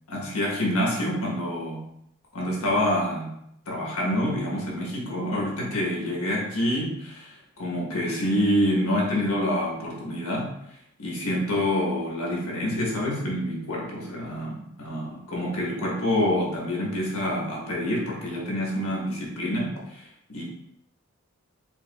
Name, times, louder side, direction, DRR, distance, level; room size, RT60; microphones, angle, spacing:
voice 1, 0.1-1.9 2.3-7.3 7.6-10.5 11.0-20.4, left 1 dB, 80° left, -3 dB, 1.3 m, -27 dB
4.6 x 3.5 x 2.3 m, 0.74 s
head